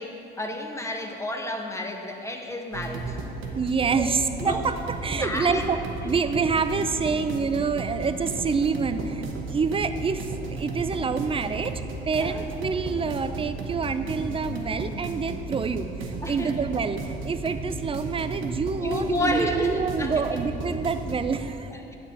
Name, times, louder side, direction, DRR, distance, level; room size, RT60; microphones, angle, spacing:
voice 1, 0.0-3.2 3.9-4.0 4.4-4.6 5.1-5.6 6.0-6.1 12.2-12.4 16.2-16.5 18.8-20.1 21.7-22.0, left 1 dB, 15° left, 2 dB, 0.8 m, -30 dB
sound 1, 2.7-21.4, right 3 dB, 80° right, 1.0 m, -34 dB
voice 2, 3.6-5.8 6.0-10.2 10.5-21.7, right 5 dB, 30° right, 10 dB, 0.4 m, -27 dB
9.2 x 6.7 x 4.2 m, 2.8 s
cardioid pair, 90°, 20 cm